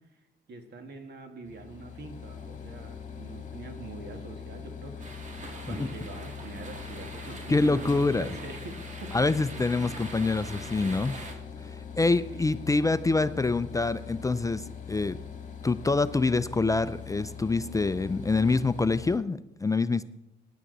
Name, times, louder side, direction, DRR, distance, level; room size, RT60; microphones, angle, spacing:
voice 1, 0.5-5.0 5.6-9.1 12.0-12.6, right 3 dB, 55° right, 5 dB, 2.2 m, -44 dB
sound 1, 1.5-19.2, left 7 dB, 40° left, 1.9 m, -42 dB
sound 2, 5.0-11.3, right 2 dB, 40° right, 2.3 m, -43 dB
voice 2, 7.5-8.3 9.1-11.3 12.0-15.2 15.6-20.0, left 3 dB, 15° left, 13 dB, 0.4 m, -26 dB
16.5 x 10.5 x 4.1 m, 0.91 s
cardioid pair, 90°, 20 cm